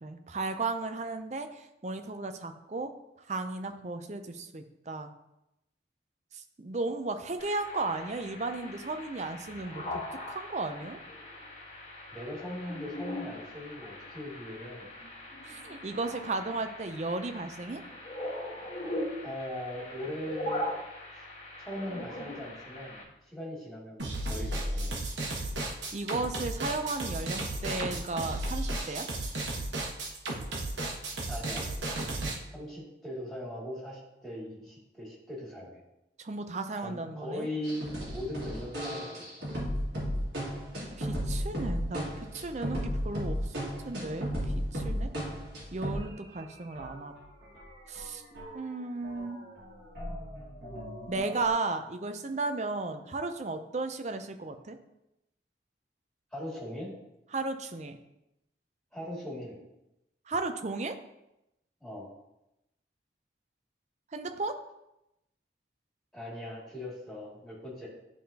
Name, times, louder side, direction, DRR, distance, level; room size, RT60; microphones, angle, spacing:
voice 1, 0.0-2.9 3.3-5.1 6.3-10.0 10.3-11.0 15.4-17.8 25.9-29.1 36.2-37.5 41.0-44.3 44.6-45.1 45.7-47.1 47.9-48.2 48.5-49.4 51.1-54.8 57.3-58.0 60.3-61.0 64.1-64.5, right 3 dB, 40° right, 8 dB, 0.5 m, -35 dB
sound 1, 7.4-23.0, left 1 dB, 35° left, 1.4 m, -41 dB
voice 2, 12.1-14.9 19.2-20.8 21.1-21.2 21.6-24.9 31.3-31.7 32.5-35.8 36.8-39.1 56.3-56.9 58.9-59.6 61.8-62.1 66.1-67.9, left 1 dB, ahead, -7 dB, 2.3 m, -39 dB
sound 2, 24.0-32.3, right 2 dB, 80° right, 1.3 m, -34 dB
sound 3, 37.6-46.1 46.4-46.5 46.7-48.7 49.0-51.5, equal, 65° right, 2.1 m, -35 dB
11.0 x 3.7 x 2.8 m, 0.89 s
head